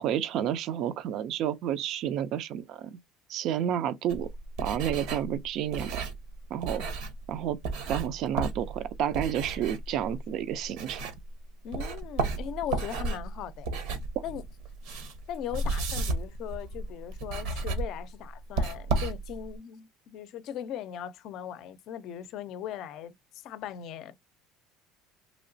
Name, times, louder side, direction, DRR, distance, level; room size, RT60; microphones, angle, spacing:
voice 1, 0.0-3.0 3.3-4.3 4.6-6.0 6.5-6.8 7.3-7.6 7.9-11.0, right 10 dB, 50° right, 0.4 m, -30 dB
sound 1, 4.1-11.4 11.7-19.6, right 3 dB, 70° right, 0.9 m, -33 dB
voice 2, 11.6-14.0 14.2-14.4 15.3-24.2, left 10 dB, 50° left, 0.5 m, -39 dB
3.1 x 2.9 x 2.6 m
cardioid pair, 145°, 0 cm